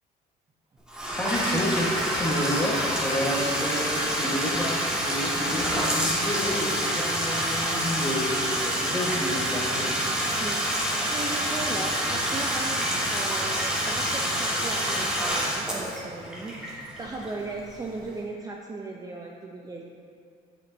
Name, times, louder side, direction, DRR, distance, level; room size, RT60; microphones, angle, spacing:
Bathtub (filling or washing), 0.9-17.6, equal, 5° right, 1.5 m, -27 dB
voice 1, 1.0-4.7 5.0-10.0, equal, 10° left, -3 dB, 1.3 m, -30 dB
voice 2, 10.9-12.8 13.1-19.8, right 2 dB, 20° right, -1 dB, 0.5 m, -37 dB
8.1 x 7.2 x 2.7 m, 2.2 s
cardioid pair, 110°, 17 cm